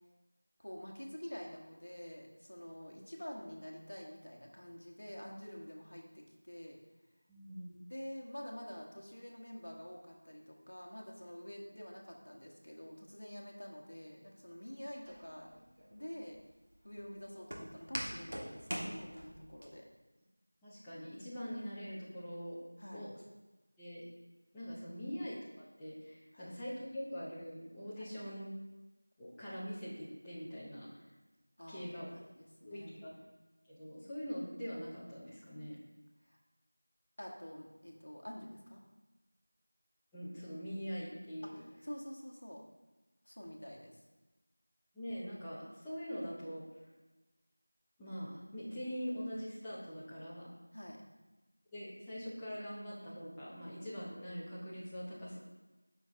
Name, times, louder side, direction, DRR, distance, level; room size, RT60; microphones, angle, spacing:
voice 1, 0.6-6.8 7.9-15.5 15.9-16.4 16.8-19.8 22.8-23.0 26.3-26.5 28.0-28.1 31.6-32.9 36.2-36.4 37.2-38.8 41.4-42.6 43.2-44.0 50.7-51.0, equal, 50° left, -1 dB, 1.4 m, -48 dB
voice 2, 7.3-7.7 20.6-22.6 22.9-23.1 23.8-24.0 24.5-28.5 29.2-30.9 31.7-32.1 32.6-33.2 33.7-35.8 40.1-41.6 44.9-46.6 48.0-50.5 51.7-55.4, equal, 5° left, -12 dB, 0.5 m, -43 dB
Walk footsteps, 15.1-19.7, equal, 45° right, 1.3 m, -44 dB
7.0 x 5.9 x 3.7 m, 1.1 s
figure-of-eight pair, 180°, 0 cm